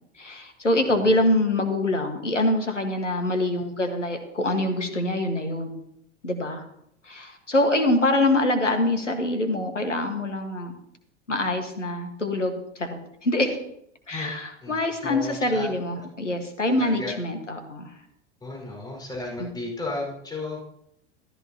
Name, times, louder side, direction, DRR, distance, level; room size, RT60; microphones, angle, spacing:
voice 1, 0.2-5.7 6.2-6.6 7.0-10.7 11.3-13.6 14.1-17.9 19.4-19.5, left 1 dB, 85° left, 6 dB, 1.7 m, -25 dB
voice 2, 14.6-15.7 16.8-17.1 18.4-20.6, left 2 dB, 10° left, -2 dB, 5.0 m, -34 dB
14.0 x 13.5 x 2.9 m, 0.73 s
figure-of-eight pair, 85°, 36 cm